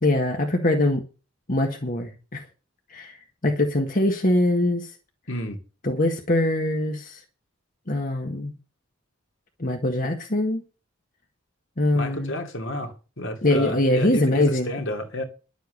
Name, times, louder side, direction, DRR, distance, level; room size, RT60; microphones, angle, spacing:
voice 1, 0.0-1.0 1.5-2.4 2.9-3.2 3.4-4.9 5.8-7.2 7.9-8.6 9.6-10.6 11.8-12.4 13.4-14.7, left 1 dB, 40° left, 1.7 m, -23 dB
voice 2, 5.3-5.6 11.9-15.2, left 1 dB, 60° left, 2.7 m, -31 dB
11.5 x 8.1 x 6.5 m
head